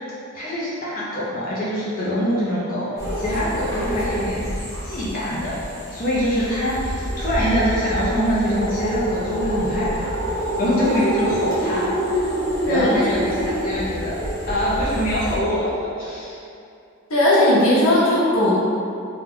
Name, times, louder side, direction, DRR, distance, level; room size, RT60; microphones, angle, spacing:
voice 1, 0.3-4.5 4.8-5.5 5.9-11.9 12.7-14.2 14.5-15.7 16.0-16.4, equal, 40° left, -9 dB, 0.6 m, -24 dB
sound 1, 3.0-15.4, equal, 15° left, 0.8 m, -26 dB
voice 2, 12.6-13.2 17.1-18.5, left 1 dB, 80° left, -8 dB, 0.9 m, -17 dB
2.9 x 2.2 x 3.6 m, 2.5 s
head